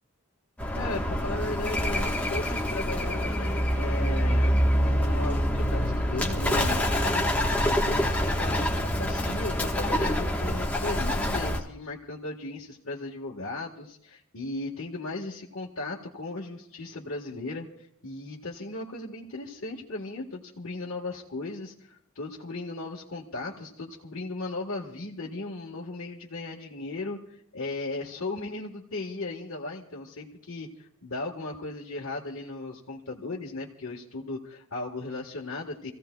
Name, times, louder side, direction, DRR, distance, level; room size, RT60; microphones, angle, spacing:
Bird, 0.6-11.6, equal, 5° left, 1.2 m, -26 dB
voice 1, 0.7-4.5 4.8-7.3 7.6-35.9, left 2 dB, 75° left, -5 dB, 1.4 m, -36 dB
29.5 x 16.0 x 2.3 m, 0.72 s
head